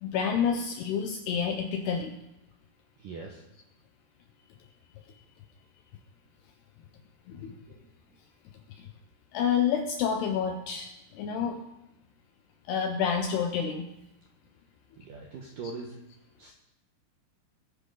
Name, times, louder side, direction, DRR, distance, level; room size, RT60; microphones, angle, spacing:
voice 1, 0.0-2.2 7.3-7.6 8.7-8.9 9.3-11.6 12.7-13.9 15.6-15.7, left 7 dB, 80° left, 4 dB, 2.4 m, -29 dB
voice 2, 3.0-3.4 7.7-7.8 15.0-16.0 16.4-16.5, right 4 dB, 75° right, 1 dB, 1.9 m, -41 dB
21.0 x 10.0 x 3.9 m, 0.94 s
omnidirectional pair, 5.5 m